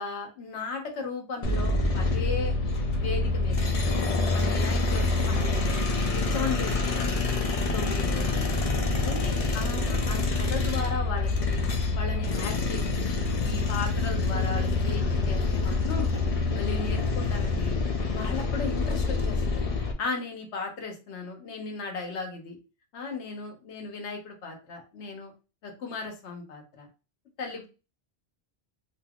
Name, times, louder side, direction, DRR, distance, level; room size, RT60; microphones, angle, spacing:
voice 1, 0.0-2.6 3.0-3.9 4.3-5.7 6.1-7.3 7.7-8.5 9.0-11.6 11.9-16.1 16.5-17.8 18.1-19.6 20.0-22.6 22.9-25.3 25.6-26.9 27.4-27.7, left 4 dB, 90° left, 3 dB, 1.1 m, -36 dB
sound 1, 1.4-19.9, left 3 dB, 45° left, 0.5 m, -26 dB
3.4 x 2.7 x 2.3 m, 0.32 s
omnidirectional pair, 1.1 m